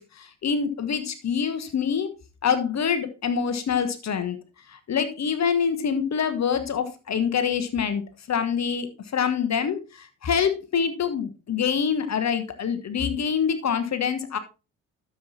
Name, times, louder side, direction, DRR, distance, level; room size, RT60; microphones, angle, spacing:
voice 1, 0.0-2.1 2.4-4.4 4.7-8.0 8.3-8.9 9.1-14.4, left 7 dB, 40° left, 10 dB, 1.3 m, -25 dB
11.5 x 7.2 x 2.8 m, 0.30 s
hypercardioid pair, 50°, 40 cm